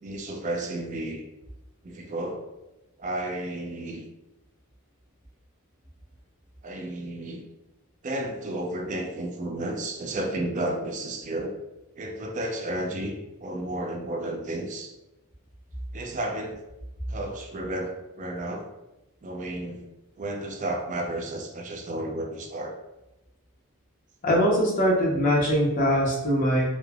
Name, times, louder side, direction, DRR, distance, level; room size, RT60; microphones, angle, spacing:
voice 1, 0.0-1.2 1.8-2.4 3.0-4.0 6.6-7.4 8.0-11.5 12.0-13.1 13.4-14.9 15.9-16.6 17.1-18.7 19.2-19.8 20.2-22.7, right 1 dB, 35° right, 3 dB, 0.4 m, -32 dB
voice 2, 24.2-26.6, equal, 40° left, -3 dB, 0.7 m, -22 dB
3.1 x 2.1 x 2.3 m, 0.97 s
head